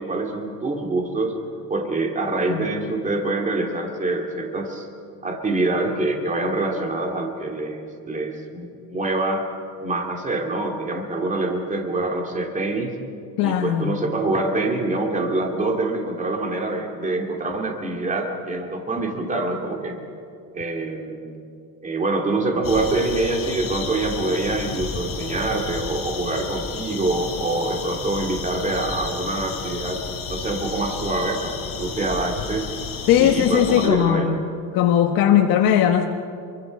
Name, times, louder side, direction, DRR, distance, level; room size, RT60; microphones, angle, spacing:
voice 1, 0.0-1.4 1.7-4.9 5.2-9.5 9.8-12.9 13.4-20.0 20.5-21.3 21.8-32.7 33.2-34.4, right 2 dB, 20° right, 2 dB, 2.6 m, -25 dB
voice 2, 2.4-2.7 13.4-14.0 33.1-34.4 34.7-36.0, left 10 dB, 65° left, 3 dB, 1.4 m, -19 dB
sound 1, 22.6-33.9, left 5 dB, 35° left, 4.1 m, -32 dB
28.0 x 24.0 x 5.4 m, 2.5 s
cardioid pair, 140°, 38 cm